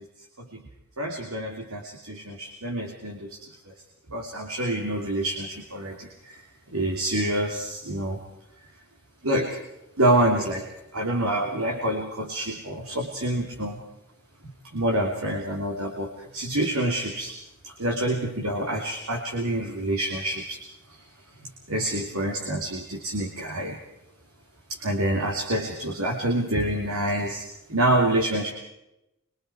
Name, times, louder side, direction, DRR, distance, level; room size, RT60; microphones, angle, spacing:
voice 1, 1.0-3.4 4.1-6.4 6.7-8.2 9.2-9.6 10.0-10.6 10.9-13.8 14.7-17.3 17.6-20.6 21.7-23.8 24.7-27.4 27.7-28.5, right 1 dB, 70° right, 1 dB, 2.9 m, -27 dB
26.0 x 23.5 x 4.8 m, 0.89 s
head